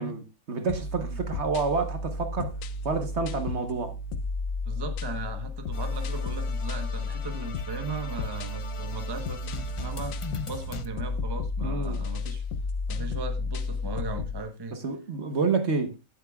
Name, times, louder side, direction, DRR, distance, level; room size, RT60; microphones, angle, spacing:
voice 1, 0.0-2.6 2.8-4.0 11.6-12.0 13.0-13.1 14.7-16.0, right 4 dB, 50° right, 1.4 m, -29 dB
sound 1, 0.7-14.4, left 3 dB, 70° left, 1.1 m, -33 dB
voice 2, 4.6-10.2 10.5-12.4 12.9-14.8, right 3 dB, 20° right, 1.0 m, -38 dB
sound 2, 5.7-10.9, left 5 dB, 55° left, 0.3 m, -41 dB
16.0 x 8.4 x 2.3 m
omnidirectional pair, 1.5 m